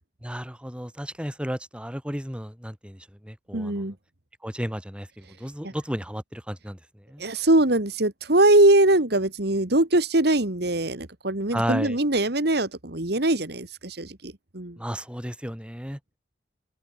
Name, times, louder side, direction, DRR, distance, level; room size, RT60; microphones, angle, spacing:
voice 1, 0.2-3.9 4.4-7.2 11.5-12.0 14.8-16.0, equal, 5° right, 5.7 m, -33 dB
voice 2, 3.5-3.9 5.6-5.7 7.2-14.8, right 1 dB, 60° right, 2.4 m, -22 dB
open air
head